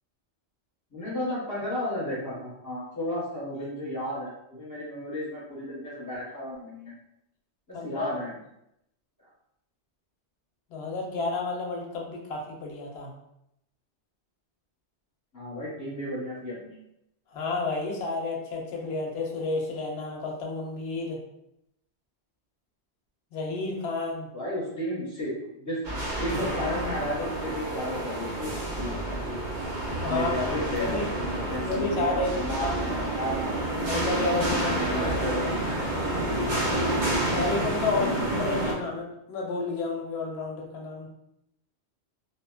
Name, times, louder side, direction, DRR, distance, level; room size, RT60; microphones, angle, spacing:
voice 1, 0.9-6.9 7.7-8.4 15.3-16.8 24.3-29.4 30.1-33.6 34.7-35.9 38.0-38.1, left 1 dB, 20° left, -8 dB, 0.8 m, -33 dB
voice 2, 7.7-8.1 10.7-13.1 17.3-21.2 23.3-24.3 30.0-30.5 30.8-31.1 31.6-32.3 32.6-32.8 33.8-34.8 37.3-41.1, left 3 dB, 75° left, 0 dB, 0.8 m, -31 dB
sound 1, 25.8-38.7, right 1 dB, 50° right, 0.7 m, -29 dB
2.6 x 2.1 x 2.3 m, 0.81 s
omnidirectional pair, 1.1 m